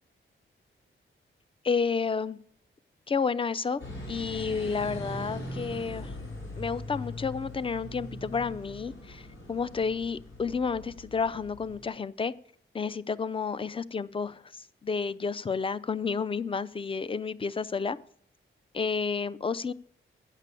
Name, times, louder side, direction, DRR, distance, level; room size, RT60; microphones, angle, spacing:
voice 1, 1.6-2.4 3.1-3.8 4.1-6.1 6.6-9.2 9.5-12.3 12.7-18.0 18.7-19.7, left 5 dB, 25° left, 18 dB, 0.4 m, -31 dB
sound 1, 3.8-11.9, left 1 dB, 70° left, 4.1 m, -41 dB
8.2 x 6.6 x 8.3 m, 0.62 s
wide cardioid pair, 100°, 21 cm